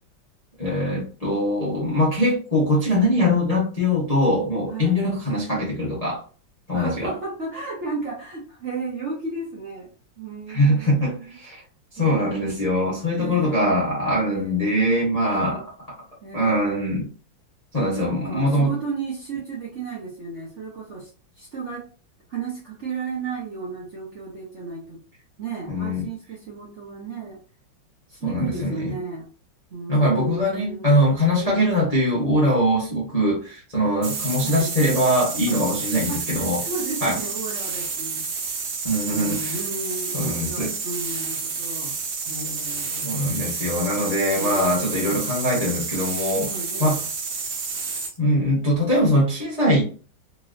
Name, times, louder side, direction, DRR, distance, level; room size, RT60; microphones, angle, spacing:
voice 1, 0.6-6.2 6.7-7.1 10.5-11.6 11.9-15.6 16.3-17.1 17.7-18.7 25.7-26.1 28.2-28.9 29.9-36.6 37.0-37.2 38.8-39.4 40.1-40.7 43.0-46.5 46.8-47.0 48.2-49.8, equal, 45° left, -5 dB, 0.4 m, -22 dB
voice 2, 4.7-5.1 6.7-9.9 10.2-11.7 12.0-12.5 13.2-13.9 14.3-14.6 15.2-15.7 16.2-17.0 18.0-21.9 22.3-25.0 25.4-27.4 28.1-29.3 29.7-31.0 31.4-31.6 34.4-34.7 35.5-35.6 36.1-38.2 39.1-42.0 42.2-43.3 44.4-45.3 46.3-47.0, right 4 dB, 55° right, -3 dB, 0.8 m, -34 dB
sound 1, 34.0-48.2, right 5 dB, 75° right, 1.5 m, -30 dB
3.1 x 2.9 x 2.5 m, 0.37 s
omnidirectional pair, 2.2 m